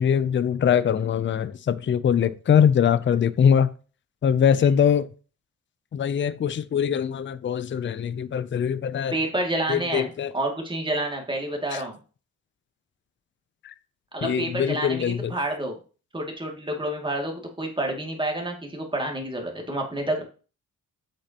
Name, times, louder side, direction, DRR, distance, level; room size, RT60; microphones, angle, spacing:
voice 1, 0.0-3.7 4.2-5.1 5.9-9.1 9.7-10.3 11.7-11.8 13.6-13.7 14.2-15.3, left 8 dB, 35° left, 0.5 m, -22 dB
voice 2, 9.1-12.0 14.1-15.8 16.1-20.2, right 1 dB, 15° right, 2.4 m, -29 dB
8.2 x 6.5 x 2.9 m
cardioid pair, 100°, 33 cm